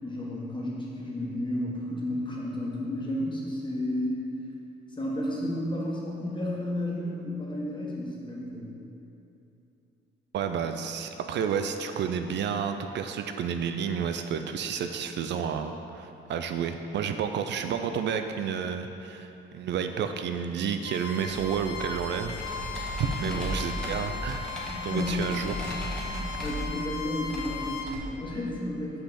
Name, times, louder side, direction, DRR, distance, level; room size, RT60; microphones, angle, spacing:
voice 1, 0.0-4.3 4.9-8.7 23.2-23.4 24.6-25.4 26.0-29.0, left 1 dB, 25° left, -4 dB, 1.4 m, -32 dB
voice 2, 10.3-19.3 19.5-24.5 24.8-25.7, right 7 dB, 60° right, 7 dB, 0.4 m, -31 dB
Bowed string instrument, 20.8-27.9, left 5 dB, 85° left, 0.6 m, -38 dB
Computer keyboard, 21.2-27.9, right 1 dB, 5° left, 1.4 m, -37 dB
5.7 x 5.6 x 4.2 m, 2.8 s
cardioid pair, 90°, 20 cm